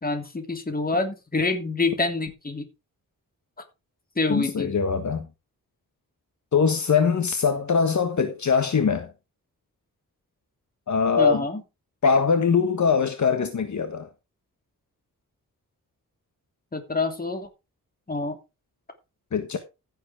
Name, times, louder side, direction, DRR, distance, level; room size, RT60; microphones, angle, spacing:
voice 1, 0.0-2.7 4.2-4.7 11.2-11.6 16.7-17.5 18.1-18.4, left 3 dB, 25° left, 2.9 m, -26 dB
voice 2, 4.3-5.3 6.5-9.1 10.9-11.4 12.0-14.1 19.3-19.6, left 6 dB, 55° left, 1.5 m, -22 dB
15.5 x 7.8 x 3.5 m
wide cardioid pair, 160°, 35 cm